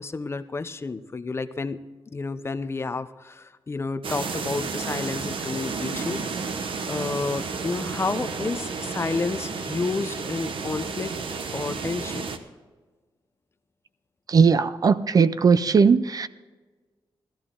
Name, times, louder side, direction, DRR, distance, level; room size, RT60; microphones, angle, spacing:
voice 1, 0.0-6.6 6.9-11.1 11.5-12.3, left 3 dB, 30° left, 12 dB, 0.5 m, -30 dB
sound 1, 4.0-12.4, right 4 dB, 75° right, 1.1 m, -32 dB
voice 2, 14.3-16.3, right 5 dB, 45° right, 14 dB, 0.4 m, -18 dB
17.0 x 13.0 x 3.8 m, 1.3 s
wide cardioid pair, 165°, 9 cm